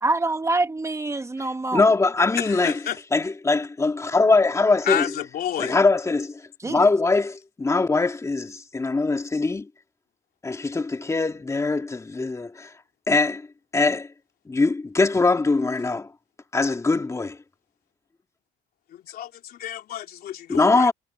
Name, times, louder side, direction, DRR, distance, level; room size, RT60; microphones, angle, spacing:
voice 1, 0.0-1.8 6.6-6.9, right 2 dB, 15° right, 1.4 m, -25 dB
voice 2, 1.7-2.8 3.1-5.1 5.6-9.7 10.4-12.7 13.1-13.5 13.7-14.1 14.5-16.1 16.5-17.4 20.5-20.9, left 3 dB, 15° left, 2.4 m, -22 dB
voice 3, 2.4-3.0 4.8-5.8 18.9-20.9, left 11 dB, 65° left, 3.3 m, -30 dB
cardioid pair, 110°, 17 cm